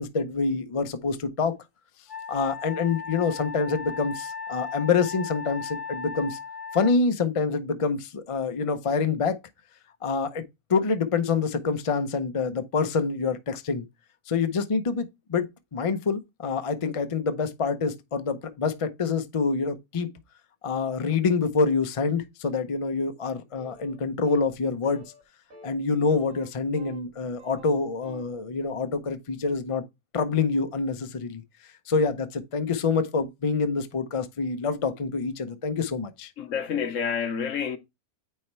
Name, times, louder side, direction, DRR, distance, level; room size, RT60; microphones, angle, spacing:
voice 1, 0.0-1.5 2.3-6.4 6.7-9.4 10.0-10.4 10.7-13.9 14.3-20.1 20.6-25.0 25.6-29.8 30.1-31.4 31.9-36.3, left 4 dB, 40° left, 0.4 m, -26 dB
Wind instrument woodwind instrument, 2.1-7.0, left 5 dB, ahead, 1.0 m, -37 dB
sound 1, 23.6-24.0 24.2-24.5 24.8-25.2 25.5-25.7 26.1-27.1 27.4-28.3, right 2 dB, 65° right, 2.2 m, -48 dB
voice 2, 36.4-37.8, left 7 dB, 60° left, 1.1 m, -28 dB
9.1 x 3.3 x 4.4 m
omnidirectional pair, 1.6 m